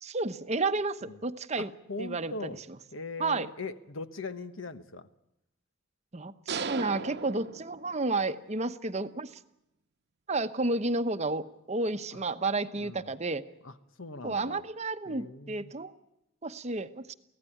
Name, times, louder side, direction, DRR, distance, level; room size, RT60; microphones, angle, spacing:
voice 1, 0.0-1.7 2.0-2.5 3.2-3.5 6.1-9.3 10.3-13.4 14.2-15.9 16.4-17.1, right 3 dB, 30° right, 10 dB, 0.9 m, -31 dB
voice 2, 1.6-2.6 2.9-5.1 12.1-12.2 12.8-13.1 13.6-14.7 15.1-15.7, left 3 dB, 70° left, 11 dB, 1.2 m, -40 dB
sound 1, 6.5-8.3, right 4 dB, 55° right, 1.0 m, -37 dB
24.0 x 16.5 x 9.9 m, 0.86 s
head